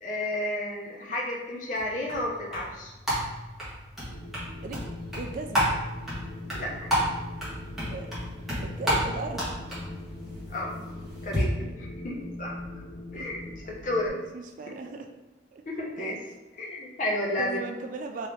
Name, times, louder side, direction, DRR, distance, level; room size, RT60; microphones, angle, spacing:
voice 1, 0.0-2.9 6.5-6.9 10.5-10.8 11.2-11.5 11.8-12.6 13.1-13.4 13.7-14.2 15.7-16.2 16.5-17.6, left 1 dB, 45° left, -2 dB, 0.8 m, -31 dB
sound 1, 1.8-11.4, equal, ahead, 1.2 m, -32 dB
Wind, 4.1-14.1, left 2 dB, 85° left, 0.9 m, -42 dB
voice 2, 4.6-5.7 7.9-8.1 8.6-9.7 11.6-11.8 13.1-13.3 14.1-15.1 15.5-15.6 16.0-16.2 17.4-18.3, right 3 dB, 45° right, 4 dB, 0.3 m, -38 dB
3.5 x 2.9 x 3.4 m, 1.1 s
head